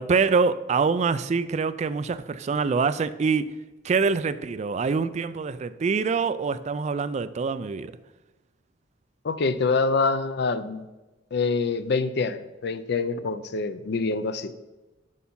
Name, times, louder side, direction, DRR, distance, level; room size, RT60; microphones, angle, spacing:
voice 1, 0.0-3.5 3.8-7.9, right 5 dB, 40° right, 0.3 m, -25 dB
voice 2, 9.2-10.9 11.3-14.5, left 4 dB, 60° left, 0.5 m, -26 dB
6.4 x 5.7 x 5.4 m
head